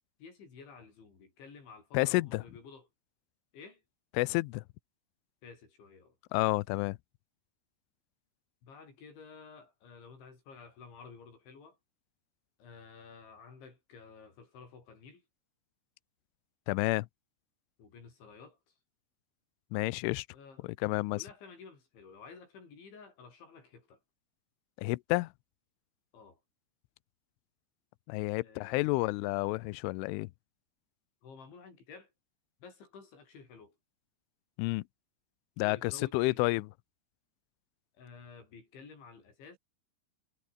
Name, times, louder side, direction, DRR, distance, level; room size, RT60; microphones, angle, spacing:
voice 1, 0.2-2.9 3.5-3.8 5.4-6.2 8.6-11.8 12.6-15.2 17.8-18.8 20.3-20.7 21.1-24.0 26.1-26.4 28.4-28.9 31.2-32.1 32.6-33.8 35.6-36.6 37.9-39.6, left 5 dB, 60° left, 9.1 m, -52 dB
voice 2, 1.9-2.4 4.2-4.6 6.3-7.0 16.7-17.1 19.7-20.3 20.6-21.2 24.8-25.3 28.1-30.3 34.6-34.8 35.6-36.7, left 23 dB, 85° left, 3.0 m, -30 dB
omnidirectional pair, 6.0 m